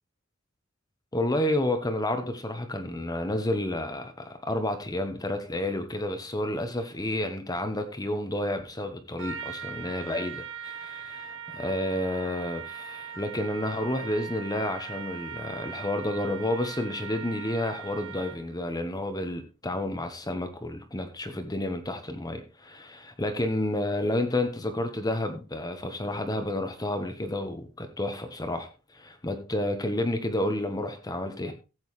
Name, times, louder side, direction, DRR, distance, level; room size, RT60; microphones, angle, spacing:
voice 1, 1.1-31.5, left 1 dB, 20° left, 1.1 m, -30 dB
Trumpet, 9.2-18.5, right 7 dB, 70° right, 0.8 m, -40 dB
15.0 x 7.9 x 3.2 m
head